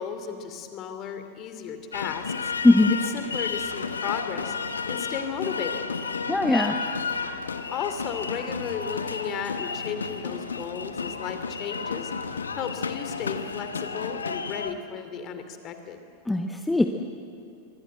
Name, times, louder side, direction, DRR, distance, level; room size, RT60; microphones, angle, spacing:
voice 1, 0.0-2.5 2.9-4.5 4.9-5.9 7.7-16.0, left 7 dB, 35° left, 8 dB, 2.7 m, -34 dB
sound 1, 1.9-14.7, left 5 dB, 75° left, 1.2 m, -32 dB
voice 2, 2.6-3.0 6.3-6.8 16.3-16.9, left 2 dB, 5° left, 5 dB, 1.1 m, -20 dB
24.5 x 24.0 x 7.8 m, 2.5 s
figure-of-eight pair, 90°, 0 cm